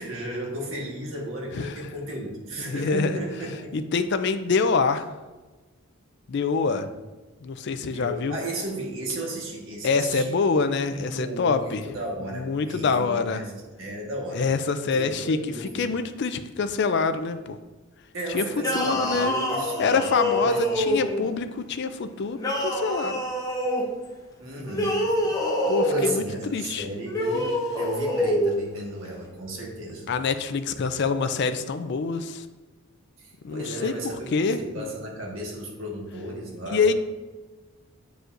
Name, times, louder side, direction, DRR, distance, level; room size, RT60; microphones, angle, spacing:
voice 1, 0.0-3.8 6.8-6.9 7.8-10.3 10.9-14.5 14.8-15.9 18.1-20.9 24.4-25.2 25.8-30.1 33.2-36.8, right 1 dB, 65° right, -2 dB, 1.4 m, -34 dB
voice 2, 2.7-3.1 3.7-5.1 6.3-6.9 7.4-8.3 9.8-11.8 12.3-13.4 14.3-15.4 15.7-17.6 18.3-18.4 18.7-19.4 19.8-23.2 25.7-26.9 30.1-32.4 33.4-33.9 34.3-34.9 36.7-36.9, left 4 dB, 50° left, 10 dB, 0.4 m, -25 dB
sound 1, 18.6-21.3 22.4-23.9 24.7-26.2 27.1-28.5, equal, 15° left, 0.7 m, -26 dB
7.9 x 4.8 x 2.5 m, 1.2 s
head